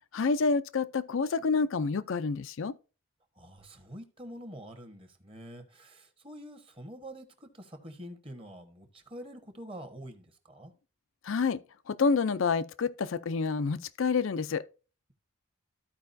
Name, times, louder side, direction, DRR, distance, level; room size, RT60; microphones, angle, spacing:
voice 1, 0.1-2.7 11.2-11.6 11.9-14.6, left 4 dB, 65° left, 0.5 m, -28 dB
voice 2, 3.3-10.7, equal, 25° right, 1.2 m, -46 dB
14.0 x 4.8 x 2.6 m
head